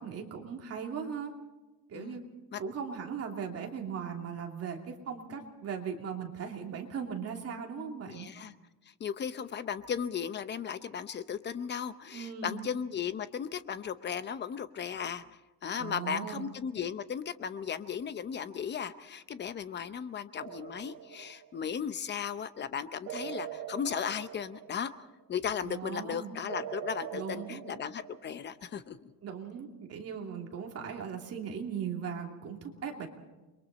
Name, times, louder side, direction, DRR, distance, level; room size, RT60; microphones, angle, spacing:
voice 1, 0.0-1.3 1.9-2.2 2.6-8.3 12.1-12.7 15.7-16.5 25.6-26.3 27.1-27.6 29.2-33.1, right 7 dB, 40° right, 2 dB, 2.9 m, -38 dB
voice 2, 8.1-8.5 9.0-24.9 25.3-29.1, left 7 dB, 30° left, 13 dB, 0.8 m, -36 dB
sound 1, 20.4-21.8 23.1-25.2 26.5-28.6, right 10 dB, 55° right, 1.3 m, -43 dB
29.0 x 23.0 x 4.2 m, 1.1 s
cardioid pair, 160°, 38 cm